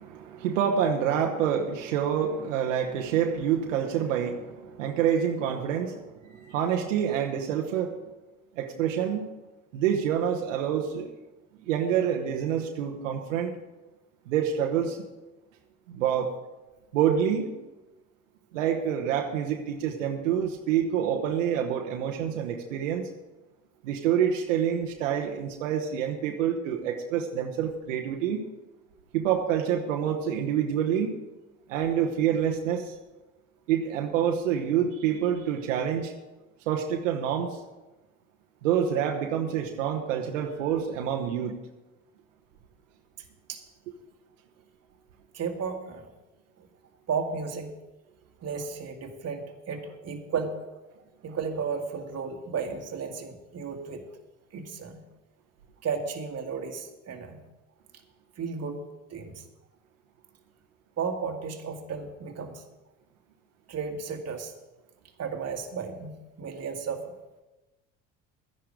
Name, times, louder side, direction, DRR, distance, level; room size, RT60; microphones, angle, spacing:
voice 1, 0.0-8.0 8.6-9.3 9.7-11.1 11.6-13.5 14.3-15.0 15.9-16.3 16.9-17.5 18.5-23.1 23.8-28.4 29.1-31.1 31.7-32.9 33.7-36.1 36.7-37.6 38.6-41.5, right 8 dB, 80° right, 2 dB, 1.1 m, -27 dB
voice 2, 45.3-46.1 46.6-46.7 47.1-47.8 48.4-50.8 51.2-54.1 54.5-55.0 55.8-57.4 58.4-58.8 59.1-59.5 61.0-62.6 63.7-64.5 65.2-67.1, right 5 dB, 40° right, 3 dB, 1.9 m, -34 dB
12.5 x 10.5 x 5.0 m, 1.1 s
hypercardioid pair, 65°, 37 cm